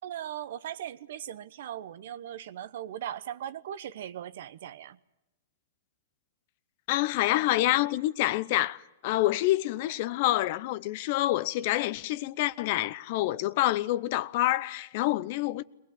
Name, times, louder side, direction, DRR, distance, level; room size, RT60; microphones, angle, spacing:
voice 1, 0.0-5.0, right 11 dB, 65° right, 1.0 m, -39 dB
voice 2, 6.9-15.6, left 16 dB, 50° left, 0.8 m, -27 dB
22.0 x 20.0 x 9.7 m
hypercardioid pair, 130°, 0 cm